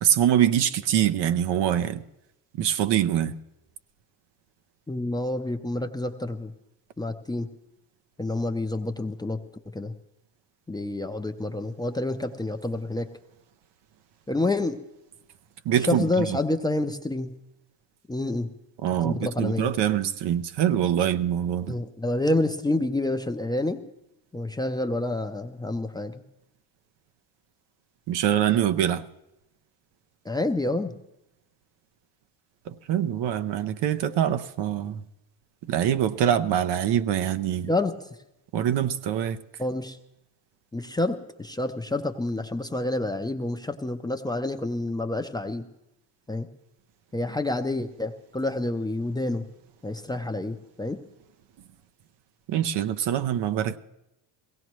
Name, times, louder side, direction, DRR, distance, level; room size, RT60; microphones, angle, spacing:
voice 1, 0.0-2.0 2.6-3.3 15.6-16.1 18.8-21.8 28.1-29.1 32.7-35.0 35.7-37.7 38.5-39.4 52.5-53.8, right 10 dB, 60° right, 0.8 m, -24 dB
voice 2, 4.9-6.5 7.0-7.5 8.2-9.4 9.7-9.9 10.7-13.1 14.3-14.8 15.9-17.3 18.1-18.5 19.0-19.7 21.7-23.8 24.3-26.2 30.2-30.9 37.7-38.2 39.6-40.0 40.7-45.7 46.3-46.5 47.1-49.4 49.8-51.0, left 2 dB, 10° left, 0.5 m, -28 dB
22.0 x 17.5 x 3.1 m
cardioid pair, 130°, 46 cm